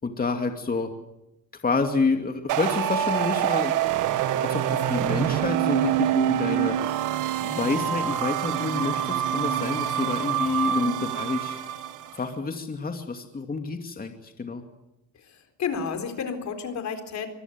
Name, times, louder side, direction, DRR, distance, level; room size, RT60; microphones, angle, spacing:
voice 1, 0.0-0.9 1.6-3.7 4.4-6.8 7.4-11.6 12.2-14.6, left 4 dB, 30° left, 4 dB, 2.6 m, -28 dB
sound 1, 2.5-12.1, right 11 dB, 90° right, 1.5 m, -26 dB
voice 2, 10.7-11.0 15.2-17.3, left 6 dB, 65° left, 6 dB, 4.1 m, -31 dB
25.5 x 19.0 x 7.6 m, 0.88 s
cardioid pair, 90°, 30 cm